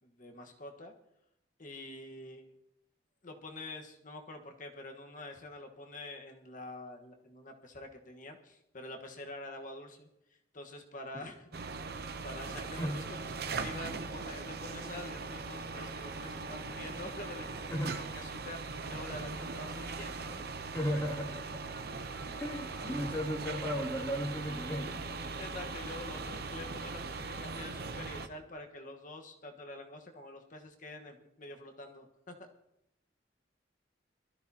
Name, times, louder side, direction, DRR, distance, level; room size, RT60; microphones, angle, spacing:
voice 1, 0.0-0.9 1.6-2.4 3.2-20.4 24.6-32.5, left 2 dB, 45° left, 3 dB, 1.4 m, -47 dB
sound 1, 11.5-28.3, right 4 dB, 55° right, 0.8 m, -40 dB
voice 2, 20.7-21.6 22.4-25.0, equal, 15° left, -2 dB, 2.5 m, -35 dB
21.5 x 13.5 x 2.9 m, 0.86 s
head